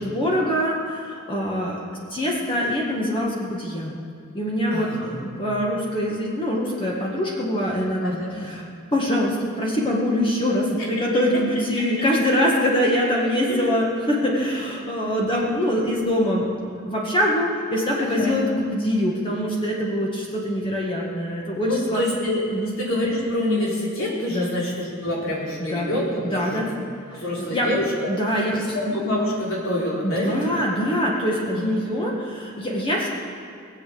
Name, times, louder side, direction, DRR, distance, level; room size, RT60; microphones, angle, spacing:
voice 1, 0.0-1.8 2.1-3.9 4.4-8.6 8.9-22.0 22.5-22.7 24.3-24.5 25.6-25.9 26.2-26.7 27.4-27.7 28.1-28.8 30.0-33.1, equal, 25° left, -3 dB, 1.8 m, -24 dB
voice 2, 4.7-5.2 8.0-8.5 13.5-13.7 14.4-14.5 18.0-18.4 21.6-22.4 22.7-26.7 27.1-28.1 28.5-30.4 31.5-31.7, left 1 dB, 70° left, -5 dB, 4.3 m, -26 dB
20.5 x 8.4 x 6.9 m, 2.4 s
head